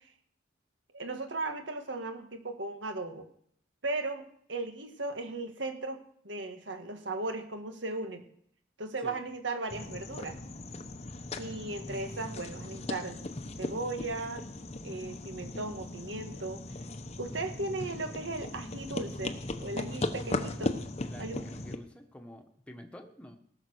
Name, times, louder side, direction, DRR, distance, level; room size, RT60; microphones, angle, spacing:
voice 1, 0.9-3.3 3.8-6.0 6.2-8.3 8.8-10.4 11.4-13.2 13.6-14.5 14.8-16.6 17.2-20.8 21.2-21.4, right 2 dB, 75° right, 6 dB, 1.8 m, -37 dB
sound 1, 9.7-21.8, left 2 dB, 35° left, 0.9 m, -38 dB
voice 2, 21.0-23.4, equal, 5° left, 3 dB, 1.4 m, -49 dB
18.0 x 6.6 x 6.5 m, 0.64 s
head